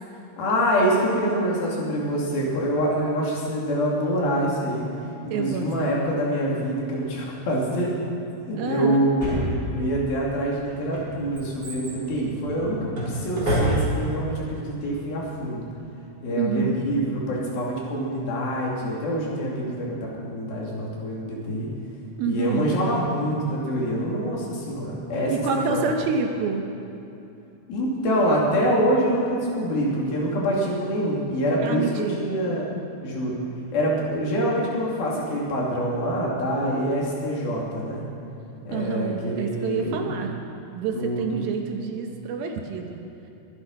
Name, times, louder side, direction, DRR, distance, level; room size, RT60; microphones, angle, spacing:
voice 1, 0.4-4.8 5.2-7.9 8.5-15.6 16.2-21.7 22.3-25.4 25.7-25.9 27.7-32.7 33.0-33.4 33.7-38.0 38.7-40.1 40.9-41.3, equal, 65° left, -4 dB, 4.3 m, -25 dB
voice 2, 5.3-5.7 8.6-9.0 16.4-16.7 22.2-22.7 25.3-26.7 31.6-32.3 38.7-40.3 40.7-43.0, right 5 dB, 70° right, 3 dB, 2.6 m, -27 dB
Drawer open or close, 9.2-10.1 10.7-14.2 14.4-14.5, equal, 25° right, 4.4 m, -28 dB
23.0 x 10.0 x 5.4 m, 2.8 s
omnidirectional pair, 4.7 m